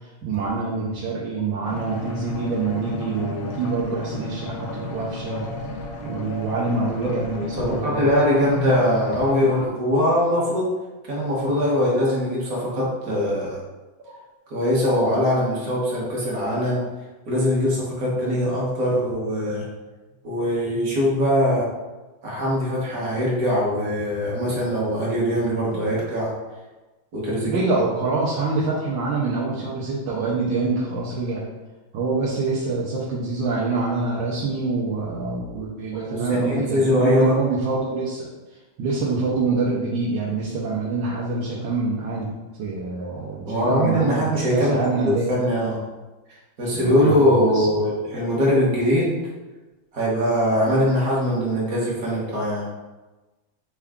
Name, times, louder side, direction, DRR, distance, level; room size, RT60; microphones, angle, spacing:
voice 1, 0.0-5.5 6.0-8.1 14.0-14.2 27.4-31.4 31.9-38.3 38.8-42.3 42.6-45.3 46.7-47.6, right 3 dB, 75° right, -5 dB, 1.5 m, -26 dB
sound 1, 1.6-9.7, left 2 dB, 85° left, 1.5 m, -34 dB
voice 2, 7.0-10.7 11.1-13.6 14.5-16.8 17.3-19.7 20.2-21.7 22.2-26.3 27.1-27.6 36.1-37.3 43.4-45.8 46.6-49.2 49.9-52.7, equal, 50° right, -5 dB, 1.5 m, -22 dB
5.6 x 2.3 x 3.5 m, 1.2 s
omnidirectional pair, 2.2 m